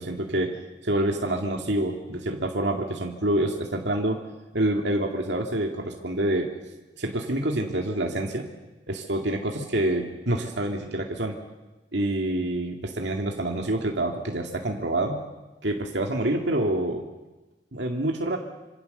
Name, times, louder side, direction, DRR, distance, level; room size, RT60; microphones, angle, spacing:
voice 1, 0.0-4.2 4.5-6.5 7.0-8.5 8.9-11.4 11.9-15.3 15.6-17.0 17.7-18.4, right 1 dB, 70° right, 1 dB, 2.2 m, -27 dB
26.5 x 26.5 x 6.7 m, 1.1 s
head